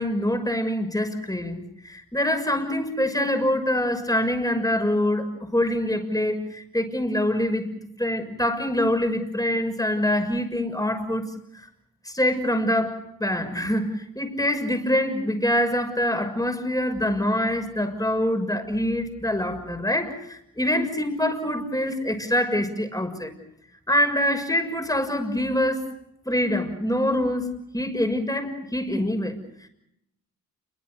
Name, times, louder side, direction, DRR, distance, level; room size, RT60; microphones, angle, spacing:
voice 1, 0.0-7.7 8.0-11.3 12.0-23.3 23.9-25.8 26.2-27.5 27.7-29.3, left 1 dB, 10° left, 7 dB, 6.5 m, -25 dB
29.0 x 24.0 x 6.6 m, 0.78 s
cardioid pair, 45°, 36 cm